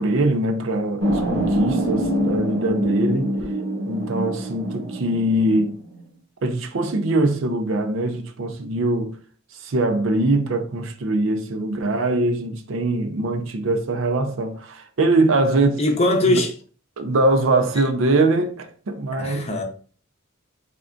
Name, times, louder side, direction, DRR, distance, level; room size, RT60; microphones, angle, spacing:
voice 1, 0.0-3.3 3.9-5.8 6.4-9.2 9.5-15.8 16.2-16.4 17.0-19.5, right 2 dB, 65° right, 0.5 m, -22 dB
sound 1, 1.0-6.0, equal, 80° right, 1.1 m, -25 dB
voice 2, 15.8-16.5 17.7-17.8 19.2-19.6, left 1 dB, 30° left, 0.7 m, -21 dB
3.6 x 3.3 x 2.5 m
head